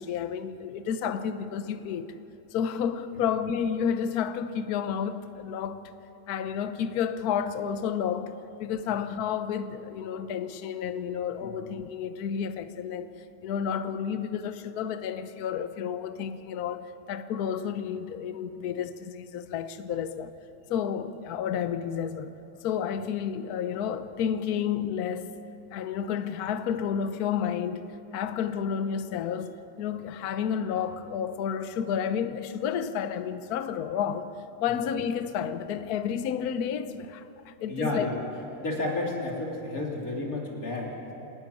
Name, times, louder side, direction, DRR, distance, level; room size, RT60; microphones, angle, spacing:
voice 1, 0.0-2.1 2.5-5.9 6.3-8.3 8.6-13.1 13.4-20.3 20.7-22.3 22.6-25.3 25.7-27.9 28.1-34.3 34.6-38.1, left 8 dB, 60° left, 1.1 m, -31 dB
voice 2, 37.7-38.2 38.6-41.1, left 2 dB, 40° left, 3.6 m, -32 dB
27.0 x 11.5 x 9.9 m
omnidirectional pair, 2.3 m